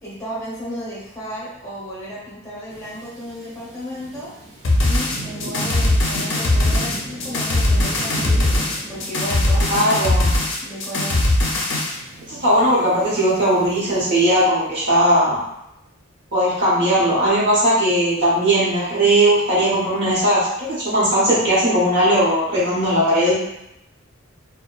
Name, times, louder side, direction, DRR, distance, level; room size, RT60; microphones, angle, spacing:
voice 1, 0.0-4.3 4.8-10.1 10.6-11.2, equal, 15° left, -8 dB, 0.8 m, -34 dB
sound 1, 2.7-14.4, right 2 dB, 35° right, 0.5 m, -38 dB
sound 2, 4.6-12.0, left 1 dB, 60° left, 0.5 m, -20 dB
voice 2, 9.7-10.3 12.3-15.4 16.3-23.4, right 1 dB, 55° right, -8 dB, 1.0 m, -18 dB
2.6 x 2.1 x 2.3 m, 0.84 s
head